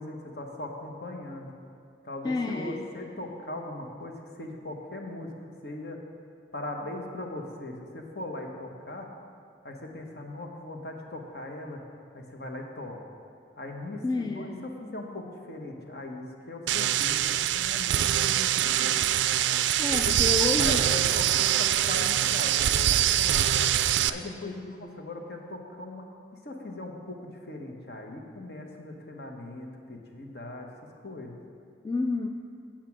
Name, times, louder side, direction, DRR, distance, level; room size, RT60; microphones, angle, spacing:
voice 1, 0.0-1.5 2.0-5.3 5.6-6.0 6.5-9.1 9.6-11.8 12.1-13.0 13.6-19.0 20.0-20.1 20.6-23.4 24.1-26.1 26.4-27.2 27.5-30.7 31.0-31.4, left 2 dB, 60° left, 2 dB, 1.1 m, -39 dB
voice 2, 2.2-2.9 14.0-14.7 19.5-20.8 24.2-25.0 31.8-32.3, left 3 dB, 20° left, 4 dB, 0.3 m, -31 dB
sound 1, 16.7-24.1, right 11 dB, 80° right, 0.3 m, -24 dB
9.1 x 7.4 x 6.0 m, 2.3 s
head